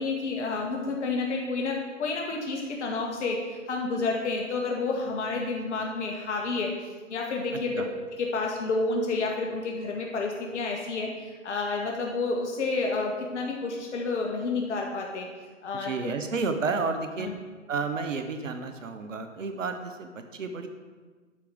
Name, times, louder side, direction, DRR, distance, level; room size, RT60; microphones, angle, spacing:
voice 1, 0.0-7.9 8.2-15.3 15.6-15.9 17.2-17.3, left 3 dB, 65° left, 0 dB, 1.9 m, -30 dB
voice 2, 15.7-17.3 17.7-20.7, right 4 dB, 80° right, 7 dB, 1.2 m, -31 dB
11.5 x 5.0 x 7.8 m, 1.4 s
hypercardioid pair, 125°, 38 cm